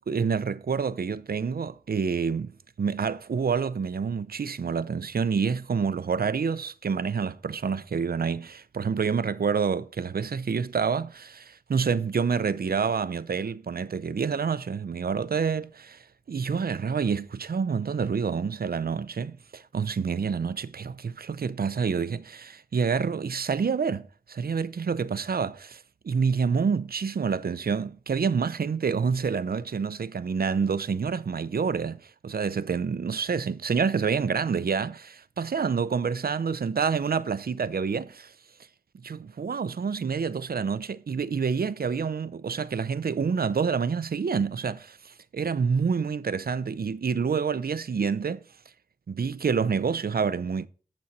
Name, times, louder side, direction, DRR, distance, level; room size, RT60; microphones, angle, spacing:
voice 1, 0.0-2.5 2.8-16.0 16.3-38.3 39.0-48.4 49.1-50.7, right 6 dB, 85° right, 0.5 m, -28 dB
8.5 x 7.9 x 4.1 m
wide cardioid pair, 55°, 15 cm